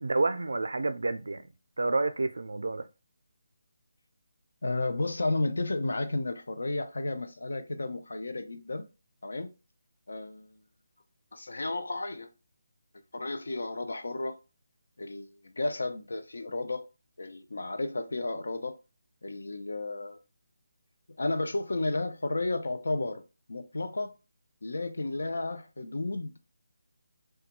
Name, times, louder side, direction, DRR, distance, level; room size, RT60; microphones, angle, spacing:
voice 1, 0.0-1.4 1.8-2.9, right 3 dB, 85° right, 0.3 m, -29 dB
voice 2, 4.6-8.9 9.2-9.5 10.1-10.6 11.3-12.3 13.1-14.4 15.0-16.9 17.2-18.8 19.2-20.2 21.2-23.2 23.5-24.1 24.6-26.3, left 2 dB, 85° left, 0.4 m, -32 dB
2.2 x 2.2 x 2.9 m
hypercardioid pair, 180°, 0 cm